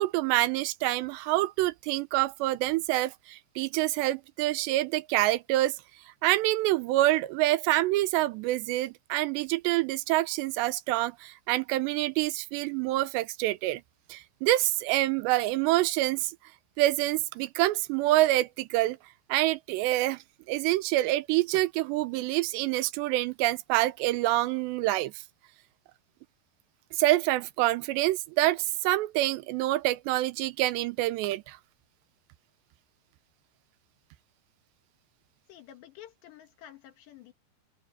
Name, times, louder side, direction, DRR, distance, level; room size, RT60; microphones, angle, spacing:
voice 1, 0.0-5.7 6.2-13.8 14.1-16.3 16.8-19.0 19.3-20.2 20.5-25.1 27.0-31.6, right 17 dB, 85° right, 2.9 m, -26 dB
voice 2, 35.5-37.3, left 11 dB, 80° left, 4.0 m, -50 dB
open air
omnidirectional pair, 5.0 m